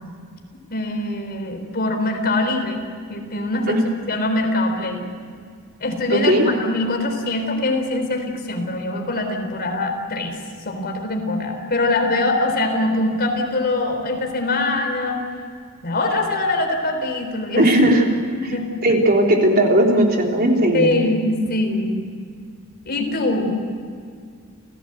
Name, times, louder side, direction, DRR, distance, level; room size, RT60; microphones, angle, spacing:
voice 1, 0.7-2.8 3.1-3.8 4.1-5.1 5.8-10.4 10.6-15.2 15.8-17.7 18.3-18.6 20.7-22.0 22.9-23.5, left 2 dB, 45° left, 4 dB, 3.9 m, -23 dB
voice 2, 6.1-6.5 17.6-18.1 18.8-20.9, right 1 dB, 45° right, 1 dB, 3.4 m, -17 dB
29.5 x 16.5 x 8.0 m, 2.1 s
head